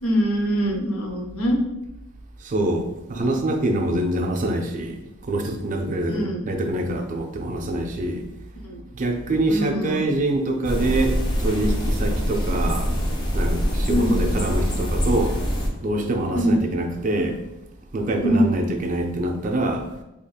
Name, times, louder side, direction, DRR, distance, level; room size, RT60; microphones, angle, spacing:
voice 1, 0.0-1.6 3.1-3.4 6.1-6.4 8.6-8.8 9.5-10.0 13.9-14.3 16.3-16.6 18.2-18.6, equal, 80° left, 1 dB, 0.7 m, -23 dB
voice 2, 2.4-8.3 8.9-13.0 13.3-15.4 15.8-17.4 17.9-19.9, right 1 dB, 35° right, 3 dB, 0.4 m, -25 dB
sound 1, 10.7-15.7, equal, 20° left, 0.5 m, -24 dB
4.2 x 2.8 x 2.3 m, 0.92 s
head